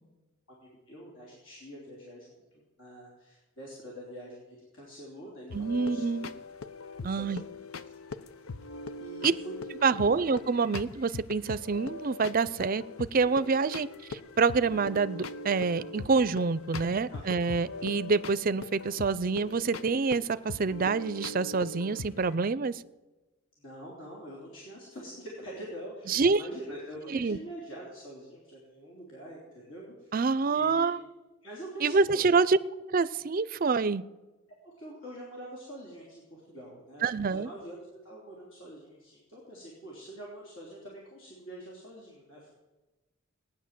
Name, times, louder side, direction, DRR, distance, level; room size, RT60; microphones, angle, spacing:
voice 1, 0.5-6.3 7.0-7.6 8.6-8.7 9.0-9.7 10.1-10.4 17.1-17.4 23.6-30.1 30.5-30.9 31.4-32.3 34.6-42.5, right 1 dB, 65° left, -4 dB, 3.6 m, -45 dB
sound 1, 5.5-22.4, left 3 dB, 85° left, 0.7 m, -41 dB
voice 2, 5.5-6.3 7.0-7.4 9.2-9.3 9.8-12.8 13.1-22.8 26.1-26.4 27.1-27.4 30.1-31.0 31.8-32.6 32.9-34.0 37.0-37.5, right 4 dB, 40° right, 16 dB, 0.5 m, -27 dB
18.0 x 9.9 x 7.5 m, 1.1 s
head